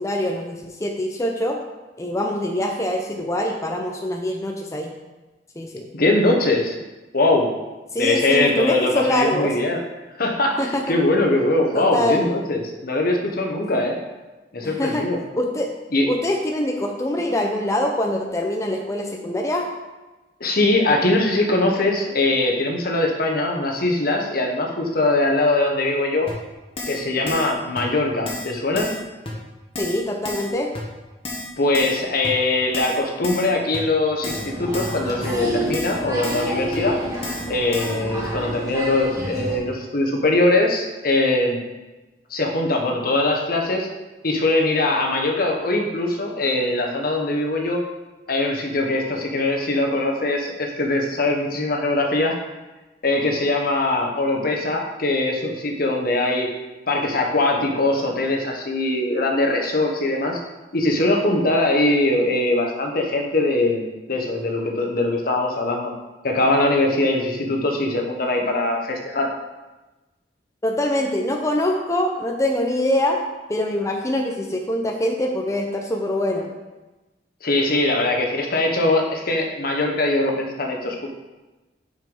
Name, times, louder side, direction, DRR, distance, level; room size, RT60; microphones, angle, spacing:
voice 1, 0.0-1.6 2.0-4.9 5.6-5.9 7.9-9.5 10.6-11.0 11.7-12.3 14.6-15.0 15.4-15.7 16.1-19.6 29.8-30.7 70.6-73.2 73.5-76.5, left 1 dB, 20° left, 2 dB, 0.6 m, -24 dB
voice 2, 5.9-6.7 7.1-7.5 8.0-9.8 10.2-14.0 14.5-15.2 15.9-16.1 20.4-26.3 26.9-28.9 31.6-37.0 37.5-41.6 42.3-43.9 44.2-47.8 48.3-52.4 53.0-56.5 56.9-60.4 60.7-65.9 66.2-69.3 77.4-81.1, left 2 dB, 60° left, 2 dB, 1.1 m, -21 dB
Keyboard (musical), 26.3-26.4 26.8-27.0 27.3-27.5 27.8-27.9 28.3-28.5 28.8-29.0 29.3-29.4 29.7-30.0 30.2-30.5 30.7-30.8 31.2-31.5 31.7-32.0 32.2-32.3 32.7-33.0 33.2-33.5 33.7-33.8 34.2-34.5 34.7-35.0 35.2-35.3 35.7-36.0 36.2-36.5 36.7-36.8 37.2-37.5 37.7-37.9, left 2 dB, 35° left, 1.3 m, -31 dB
Applause, 34.2-39.6, right 1 dB, 20° right, 1.7 m, -29 dB
6.0 x 5.5 x 5.5 m, 1.1 s
head